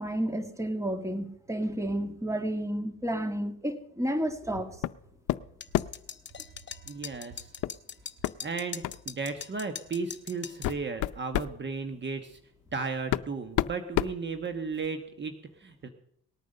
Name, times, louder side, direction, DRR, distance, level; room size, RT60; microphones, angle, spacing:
voice 1, 0.0-4.7, right 1 dB, 10° right, 8 dB, 1.9 m, -31 dB
sound 1, 4.8-5.0 5.3-6.1 7.6-7.8 8.2-8.4 8.8-9.0 9.9-10.0 10.4-11.6 12.6-12.7 13.1-14.9, left 15 dB, 80° left, 0.5 m, -30 dB
sound 2, 5.6-10.7, left 7 dB, 35° left, 1.0 m, -42 dB
voice 2, 6.9-7.5 8.4-12.4 12.7-15.9, right 4 dB, 35° right, 7 dB, 1.2 m, -35 dB
18.5 x 9.3 x 6.6 m, 0.69 s
cardioid pair, 90°, 30 cm